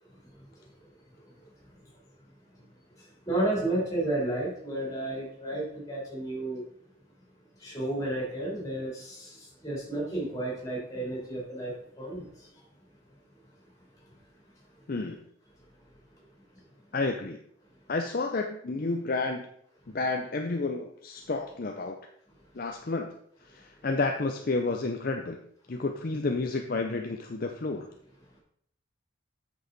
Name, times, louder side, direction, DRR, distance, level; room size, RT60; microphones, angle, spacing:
voice 1, 3.2-6.6 7.6-12.3, right 1 dB, 15° left, -4 dB, 3.3 m, -32 dB
voice 2, 14.9-15.2 16.9-17.4 17.9-19.5 19.9-22.0 22.5-23.2 23.4-25.4 25.7-27.9, left 3 dB, 45° left, 4 dB, 0.6 m, -30 dB
8.1 x 6.4 x 4.0 m, 0.69 s
head